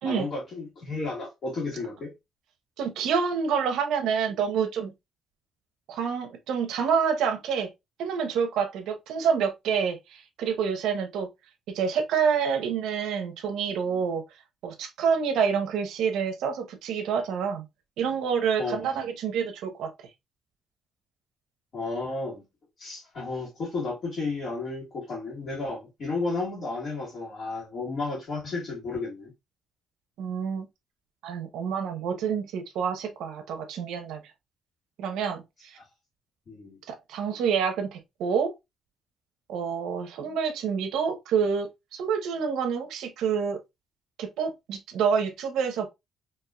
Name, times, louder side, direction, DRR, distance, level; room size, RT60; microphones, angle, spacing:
voice 1, 0.0-2.1 18.6-18.9 21.7-22.4 22.8-29.3 36.5-36.8, left 3 dB, 40° left, 1.7 m, -32 dB
voice 2, 2.8-4.9 5.9-7.7 8.0-11.3 11.7-14.2 14.6-17.6 18.0-19.9 30.2-30.7 31.2-34.2 35.0-35.8 36.9-38.5 39.5-43.6 44.2-45.9, right 6 dB, 80° right, 0.8 m, -27 dB
4.5 x 2.9 x 2.3 m
cardioid pair, 165°, 0 cm